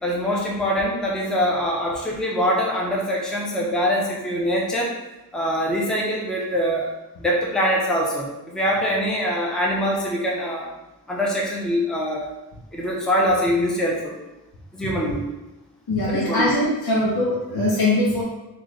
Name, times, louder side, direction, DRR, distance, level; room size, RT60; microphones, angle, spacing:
voice 1, 0.0-4.9 5.3-6.9 7.2-10.7 11.1-12.3 12.7-14.2 14.7-15.2 16.1-16.6, equal, ahead, -3 dB, 0.6 m, -23 dB
voice 2, 15.9-18.2, left 1 dB, 85° left, -6 dB, 0.8 m, -21 dB
3.1 x 2.4 x 3.8 m, 1.0 s
wide cardioid pair, 85°, 37 cm